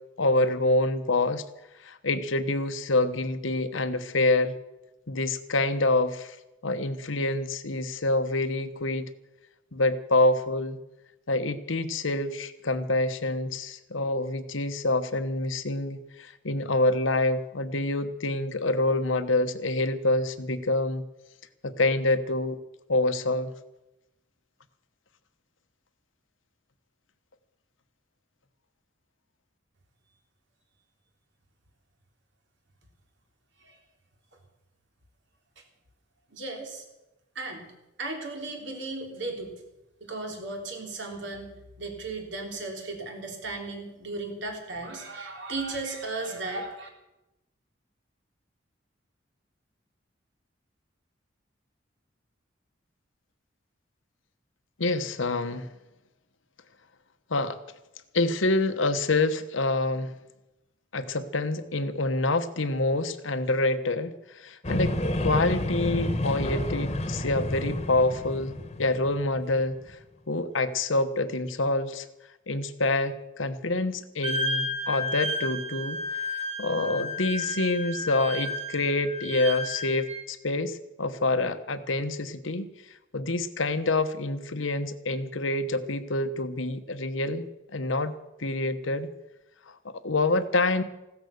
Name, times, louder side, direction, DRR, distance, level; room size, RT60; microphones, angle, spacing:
voice 1, 0.2-1.4 1.8-4.5 5.1-6.4 6.6-9.1 9.7-10.8 11.3-21.0 21.6-22.6 22.9-23.5 54.8-55.7 57.3-57.6 58.1-60.1 60.9-70.0 70.3-72.0 72.5-76.0 76.6-82.7 83.1-87.5 87.7-89.1 89.7-90.8, left 2 dB, 85° left, 9 dB, 1.2 m, -27 dB
voice 2, 36.3-36.9 37.4-37.7 38.0-39.6 40.0-46.9, right 3 dB, 70° right, 2 dB, 3.7 m, -35 dB
sound 1, 64.6-70.0, left 1 dB, 30° left, 1.4 m, -30 dB
Wind instrument woodwind instrument, 74.2-80.2, left 1 dB, 35° right, 3.4 m, -32 dB
16.0 x 13.0 x 6.7 m, 0.96 s
head